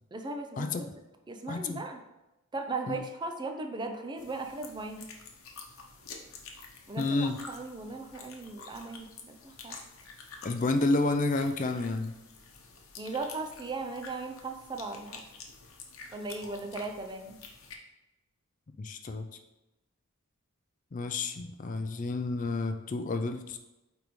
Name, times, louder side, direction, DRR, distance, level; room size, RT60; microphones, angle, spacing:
voice 1, 0.1-0.9 1.3-2.0 2.5-5.1 6.9-9.8 13.0-15.2 16.1-17.4, right 3 dB, 20° right, 5 dB, 0.5 m, -37 dB
voice 2, 1.5-1.8 2.9-3.1 7.0-7.4 10.4-12.1 18.8-19.3 20.9-23.6, left 2 dB, 35° left, 7 dB, 0.4 m, -30 dB
sound 1, 4.2-17.7, left 4 dB, 75° left, 0.9 m, -49 dB
8.8 x 3.4 x 3.1 m, 1.0 s
head